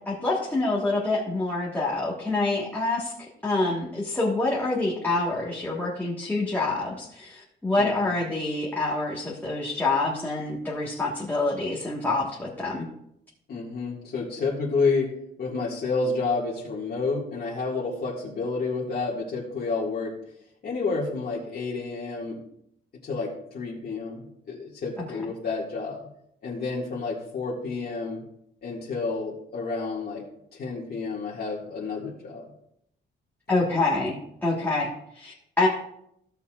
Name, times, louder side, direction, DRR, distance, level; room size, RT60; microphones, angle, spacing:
voice 1, 0.0-3.1 3.4-12.9 33.5-34.9 35.1-35.7, left 2 dB, 10° left, -5 dB, 1.5 m, -26 dB
voice 2, 7.8-8.1 13.5-15.1 15.4-20.1 20.6-22.4 23.0-26.0 26.4-28.2 28.6-30.2 30.5-32.5, left 4 dB, 55° left, -6 dB, 1.9 m, -30 dB
16.0 x 6.9 x 2.4 m, 0.75 s
cardioid pair, 135°, 20 cm